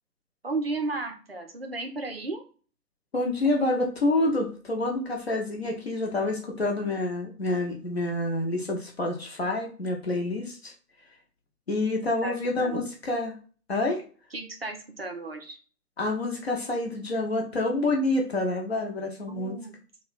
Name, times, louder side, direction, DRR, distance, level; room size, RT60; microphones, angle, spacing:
voice 1, 0.4-2.4 12.2-12.8 14.3-15.6 19.3-19.8, right 3 dB, 40° right, 3 dB, 0.5 m, -34 dB
voice 2, 3.1-10.7 11.7-13.3 13.7-14.0 16.0-19.6, left 2 dB, 40° left, 0 dB, 0.8 m, -27 dB
3.1 x 2.2 x 3.9 m, 0.39 s
figure-of-eight pair, 145°, 47 cm